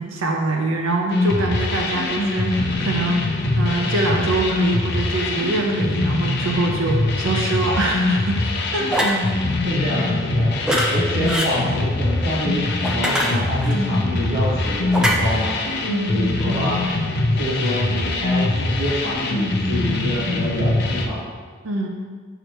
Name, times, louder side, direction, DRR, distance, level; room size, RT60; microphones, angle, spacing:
voice 1, 0.0-8.9 15.8-16.7 21.6-21.9, right 2 dB, 90° right, 1 dB, 0.6 m, -24 dB
sound 1, 1.1-21.1, left 2 dB, 55° left, 0.6 m, -23 dB
sound 2, 8.9-9.2 10.6-10.9 11.3-11.5 12.8-13.8 14.9-15.2, equal, 5° right, 0.5 m, -22 dB
voice 2, 9.6-10.5 10.9-15.5 16.1-16.3 16.6-16.8 17.4-21.2, equal, 50° right, -11 dB, 1.4 m, -26 dB
6.3 x 4.8 x 3.0 m, 1.5 s
head